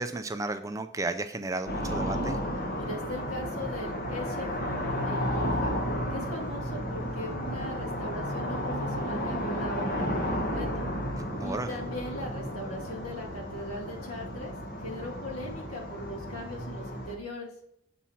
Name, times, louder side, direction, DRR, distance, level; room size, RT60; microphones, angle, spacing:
voice 1, 0.0-2.4 11.4-11.8, right 2 dB, 15° right, 8 dB, 0.3 m, -33 dB
sound 1, 1.7-17.1, equal, 40° left, 1.4 m, -33 dB
voice 2, 2.7-5.7 6.1-10.8 11.4-14.5 14.8-17.5, left 1 dB, 90° left, 0 dB, 2.1 m, -39 dB
7.2 x 4.2 x 5.7 m, 0.73 s
head